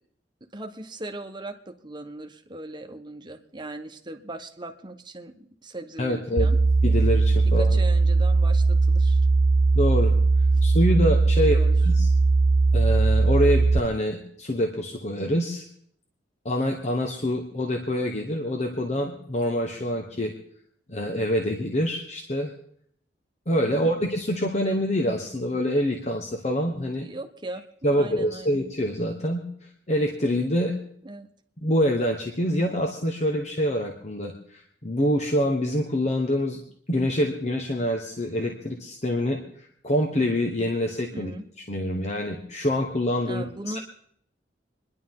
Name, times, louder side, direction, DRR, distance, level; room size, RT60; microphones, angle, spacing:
voice 1, 0.5-6.6 7.6-9.2 11.4-11.7 23.7-24.0 27.0-28.6 31.0-31.3 41.1-41.4 43.3-43.8, right 2 dB, 25° right, 5 dB, 1.2 m, -39 dB
voice 2, 6.0-6.5 6.8-7.8 9.7-10.1 10.6-11.6 11.8-12.1 12.7-15.6 16.4-20.3 20.9-22.5 23.5-27.1 27.8-29.4 29.9-30.7 31.6-36.6 36.9-41.3 41.7-43.4 43.7-43.8, equal, 40° left, 2 dB, 1.3 m, -26 dB
sound 1, 6.4-13.8, right 3 dB, 55° right, 0.6 m, -19 dB
26.5 x 11.0 x 3.8 m, 0.66 s
head